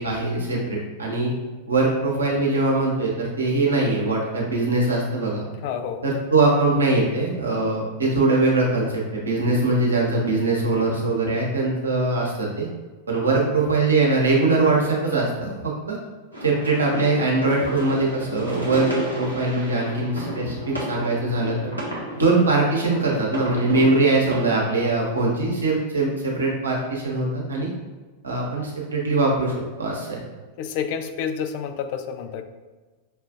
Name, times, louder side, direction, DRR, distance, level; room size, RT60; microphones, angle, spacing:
voice 1, 0.0-1.3 1.7-5.4 6.0-12.7 13.1-16.0 16.4-21.6 22.1-27.7 28.2-30.2, right 2 dB, 75° right, -3 dB, 0.9 m, -22 dB
voice 2, 5.6-6.0 12.0-12.1 13.4-13.5 30.6-32.4, left 7 dB, 45° left, 8 dB, 0.3 m, -29 dB
sound 1, 16.3-24.4, right 1 dB, 90° left, 0.9 m, -33 dB
5.5 x 2.4 x 2.5 m, 1.3 s
figure-of-eight pair, 90°, 0 cm